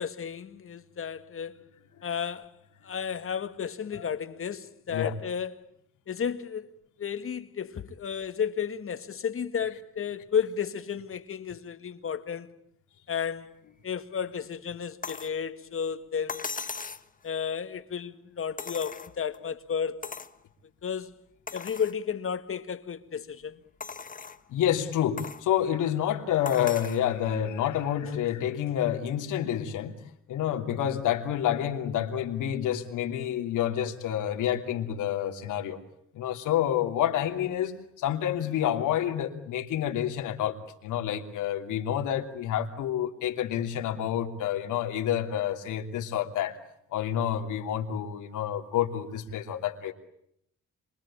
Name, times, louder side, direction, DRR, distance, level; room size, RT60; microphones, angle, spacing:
voice 1, 0.0-1.6 2.0-2.5 2.8-5.5 6.1-6.7 7.0-12.5 13.1-13.5 13.8-16.5 17.2-20.0 20.8-21.2 21.5-23.6 28.1-28.2, left 7 dB, 45° left, 2.0 m, -33 dB
sound 1, 15.0-15.4 16.3-17.1 18.6-19.4 20.0-20.4 20.9-21.0 21.5-22.0 22.6-22.7 23.8-24.4 25.2-25.5 26.5-27.0 28.3-28.4, left 5 dB, 25° left, 1.3 m, -38 dB
voice 2, 24.5-29.9 30.3-35.8 36.1-46.6 46.9-49.9, left 10 dB, 85° left, 3.1 m, -28 dB
27.0 x 24.0 x 8.8 m
cardioid pair, 90°, 30 cm